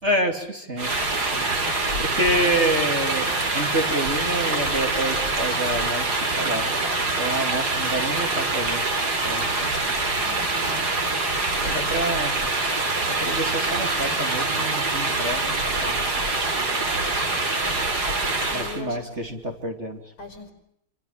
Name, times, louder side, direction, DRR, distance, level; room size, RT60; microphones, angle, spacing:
voice 1, 0.0-1.6 2.0-6.7 7.1-9.0 9.2-9.8 11.6-12.4 13.1-16.1 18.5-20.0, right 1 dB, 30° right, 4 dB, 3.4 m, -28 dB
sound 1, 0.8-18.8, right 3 dB, 45° right, 3.9 m, -25 dB
voice 2, 10.2-10.6 18.3-19.1 20.2-20.5, left 4 dB, 70° left, 7 dB, 6.5 m, -39 dB
27.0 x 26.5 x 7.6 m, 0.75 s
omnidirectional pair, 2.3 m